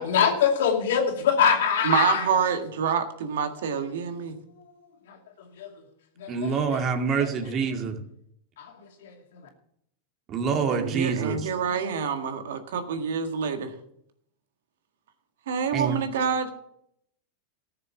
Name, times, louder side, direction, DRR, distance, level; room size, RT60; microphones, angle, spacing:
voice 1, 0.0-2.3 4.1-4.2 5.1-5.2 5.6-5.7 6.2-6.8 7.2-7.5 8.6-8.7 9.0-9.4, left 7 dB, 75° left, 3 dB, 2.4 m, -24 dB
voice 2, 1.8-4.4 10.7-13.7 15.5-16.5, right 6 dB, 80° right, 6 dB, 1.7 m, -27 dB
voice 3, 6.3-8.0 10.3-11.5 15.7-16.0, right 5 dB, 35° right, 5 dB, 2.1 m, -26 dB
14.0 x 6.7 x 7.0 m, 0.72 s
hypercardioid pair, 110°, 0 cm